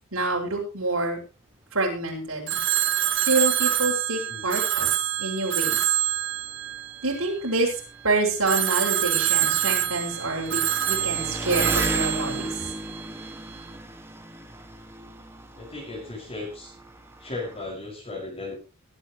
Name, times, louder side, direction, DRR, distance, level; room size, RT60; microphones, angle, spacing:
voice 1, 0.1-1.2 1.7-2.6 3.2-5.9 7.0-10.6 10.9-12.7, right 2 dB, 75° right, -2 dB, 6.3 m, -27 dB
Telephone, 2.5-7.7 8.5-13.3, right 12 dB, 60° right, 1.2 m, -26 dB
Engine, 4.7-4.8 5.0-17.7, right 1 dB, 10° right, 2.0 m, -36 dB
voice 2, 15.6-16.7 17.2-18.6, left 2 dB, 30° left, -5 dB, 6.4 m, -36 dB
22.0 x 11.0 x 3.2 m, 0.33 s
head